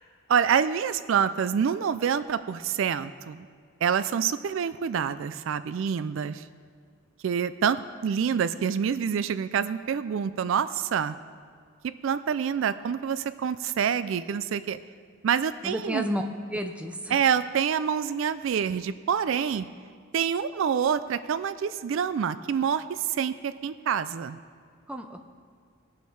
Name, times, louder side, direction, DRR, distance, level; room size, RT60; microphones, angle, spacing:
voice 1, 0.3-3.5 3.8-6.4 7.2-11.2 12.0-14.8 15.2-16.1 17.1-19.7 20.1-24.4, right 7 dB, 65° right, 14 dB, 0.3 m, -27 dB
voice 2, 15.6-16.2 16.5-17.2 24.9-25.2, equal, 5° right, 5 dB, 0.5 m, -31 dB
18.5 x 7.0 x 4.6 m, 2.2 s
head